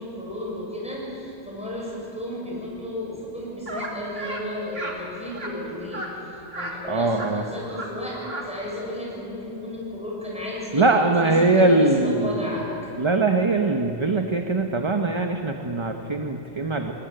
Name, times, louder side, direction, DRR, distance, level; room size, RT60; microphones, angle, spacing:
voice 1, 0.0-12.7, left 1 dB, 5° right, -5 dB, 7.0 m, -34 dB
sound 1, 3.7-3.9 4.2-4.4 4.7-5.0 5.3-5.5 5.9-6.1 6.5-6.7 7.0-7.3 7.6-7.9 8.1-8.4, right 2 dB, 55° right, 2.9 m, -33 dB
voice 2, 6.9-7.4 10.7-12.6 13.0-16.9, right 2 dB, 25° right, 4 dB, 1.0 m, -22 dB
21.5 x 20.5 x 9.2 m, 2.8 s
omnidirectional pair, 1.2 m